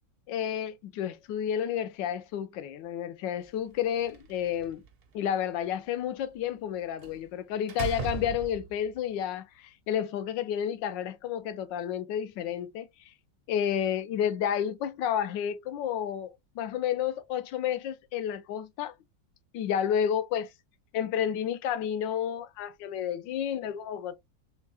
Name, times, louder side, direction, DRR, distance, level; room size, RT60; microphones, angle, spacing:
voice 1, 0.3-4.8 5.1-12.9 13.5-16.3 16.6-18.9 19.5-20.5 20.9-24.2, left 9 dB, 80° left, 1.3 m, -31 dB
Slam, 3.8-4.9 7.0-7.2 7.7-8.9, right 6 dB, 60° right, 0.6 m, -37 dB
3.6 x 3.3 x 3.3 m
omnidirectional pair, 2.0 m